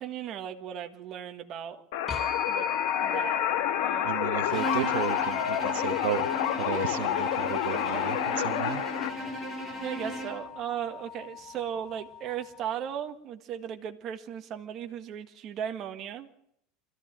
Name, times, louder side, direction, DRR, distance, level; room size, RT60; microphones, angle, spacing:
voice 1, 0.0-1.8 2.4-2.7 3.0-3.4 3.8-4.3 7.0-7.4 7.7-8.4 9.8-16.4, right 9 dB, 30° right, 6 dB, 1.7 m, -37 dB
sound 1, 1.9-9.1, left 12 dB, 65° left, 1.5 m, -29 dB
sound 2, 2.1-12.7, left 7 dB, 15° left, 1.1 m, -36 dB
voice 2, 4.0-6.3 6.6-8.8, right 14 dB, 75° right, 11 dB, 1.1 m, -34 dB
Bowed string instrument, 4.5-10.5, equal, ahead, 3.6 m, -36 dB
24.5 x 14.5 x 7.5 m, 0.76 s
cardioid pair, 175°, 0 cm